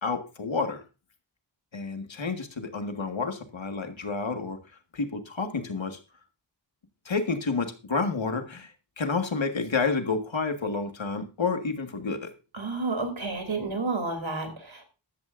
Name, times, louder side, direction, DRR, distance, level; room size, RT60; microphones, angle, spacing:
voice 1, 0.0-0.8 1.7-4.6 4.9-6.0 7.1-8.7 9.0-12.3, left 4 dB, 80° left, 6 dB, 1.8 m, -29 dB
voice 2, 12.5-14.9, right 3 dB, 85° right, 6 dB, 3.2 m, -31 dB
13.5 x 12.5 x 2.6 m, 0.31 s
wide cardioid pair, 50°, 45 cm